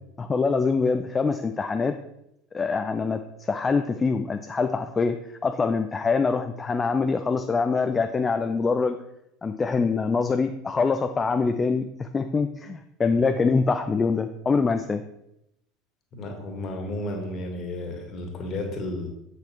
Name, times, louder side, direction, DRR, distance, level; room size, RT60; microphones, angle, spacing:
voice 1, 0.2-2.0 2.5-9.0 9.4-15.0, left 4 dB, 20° left, 7 dB, 0.4 m, -24 dB
voice 2, 16.1-19.1, left 1 dB, 40° left, 3 dB, 1.8 m, -32 dB
7.7 x 7.1 x 3.2 m, 0.81 s
figure-of-eight pair, 70°, 0 cm